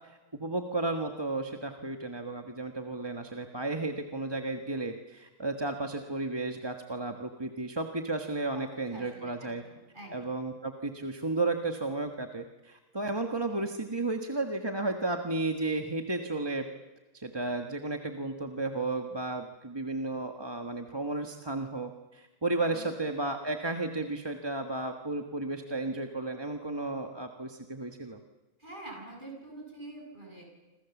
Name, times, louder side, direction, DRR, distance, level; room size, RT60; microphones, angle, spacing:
voice 1, 0.0-9.6 10.1-16.7 17.1-28.2, right 2 dB, 20° right, 4 dB, 1.4 m, -33 dB
voice 2, 8.9-10.2 22.6-23.0 28.6-30.4, right 2 dB, 35° right, 0 dB, 7.5 m, -46 dB
27.5 x 26.5 x 7.2 m, 1.1 s
omnidirectional pair, 1.5 m